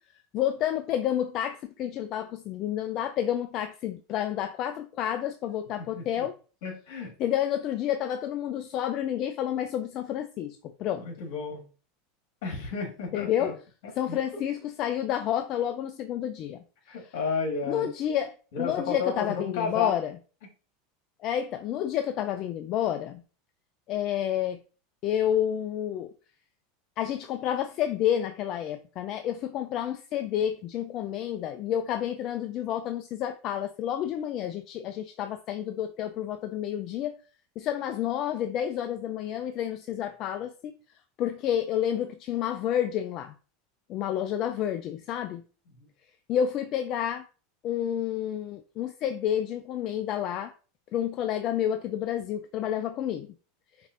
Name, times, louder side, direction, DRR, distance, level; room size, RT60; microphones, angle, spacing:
voice 1, 0.3-6.3 7.2-11.1 13.1-13.5 14.0-16.6 17.7-20.1 21.2-23.2 23.9-24.6 25.0-26.1 27.0-37.1 37.6-40.7 41.2-43.3 43.9-45.4 46.3-47.2 47.6-50.5 50.9-53.3, left 10 dB, 45° left, 0.3 m, -29 dB
voice 2, 5.8-6.2 6.6-7.1 11.0-11.6 12.4-13.5 13.8-14.2 16.9-17.9 18.5-20.0 45.7-45.9, left 5 dB, 70° left, 1.7 m, -32 dB
5.3 x 2.6 x 2.5 m
supercardioid pair, 120°, 0 cm